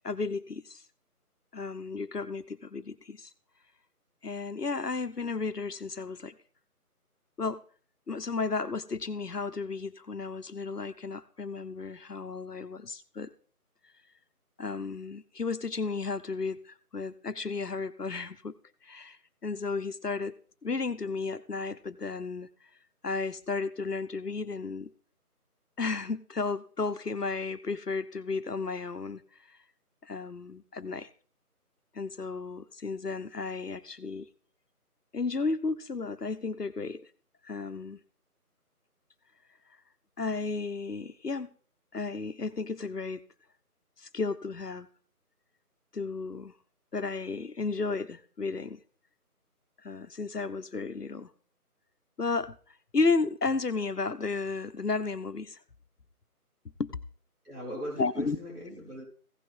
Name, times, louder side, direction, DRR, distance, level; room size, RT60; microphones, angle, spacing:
voice 1, 0.0-0.8 1.5-3.3 4.2-6.4 7.4-7.6 8.1-13.3 14.6-18.5 18.8-20.4 20.6-22.5 23.0-24.9 25.8-29.2 29.5-29.6 30.0-31.1 31.9-34.3 35.1-37.0 37.4-38.0 40.2-41.5 41.9-43.2 44.0-44.9 45.9-46.5 46.9-48.8 49.8-51.3 52.2-52.6 52.9-55.6 56.8-56.9 58.0-58.4, left 4 dB, 90° left, 12 dB, 1.1 m, -33 dB
voice 2, 57.4-59.1, equal, 75° right, -4 dB, 4.4 m, -39 dB
16.0 x 6.4 x 3.8 m, 0.42 s
figure-of-eight pair, 165°, 46 cm